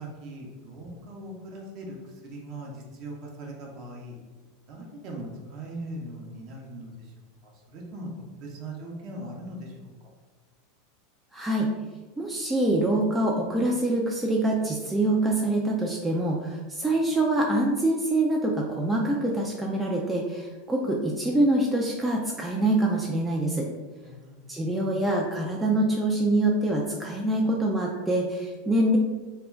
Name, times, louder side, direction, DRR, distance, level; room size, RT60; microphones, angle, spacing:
voice 1, 0.0-4.2 4.7-7.1 7.4-9.9 24.0-25.0, right 1 dB, 45° right, -1 dB, 0.6 m, -40 dB
voice 2, 11.3-11.7 12.2-23.7 24.5-29.0, right 1 dB, 10° right, -2 dB, 0.3 m, -25 dB
2.2 x 2.1 x 3.5 m, 1.3 s
figure-of-eight pair, 85°, 0 cm